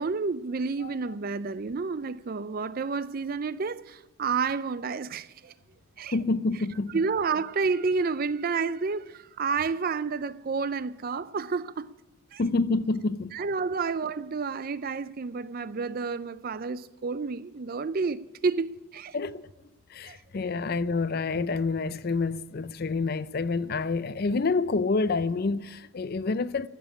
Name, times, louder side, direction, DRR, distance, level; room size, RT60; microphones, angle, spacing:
voice 1, 0.0-5.5 6.0-6.2 6.9-11.9 12.3-12.4 13.3-19.2 20.0-20.2, right 4 dB, 40° right, 0.4 m, -30 dB
voice 2, 6.1-7.0 12.4-13.3 19.1-19.5 19.9-26.7, left 3 dB, 45° left, 0.4 m, -28 dB
14.5 x 7.1 x 10.0 m
head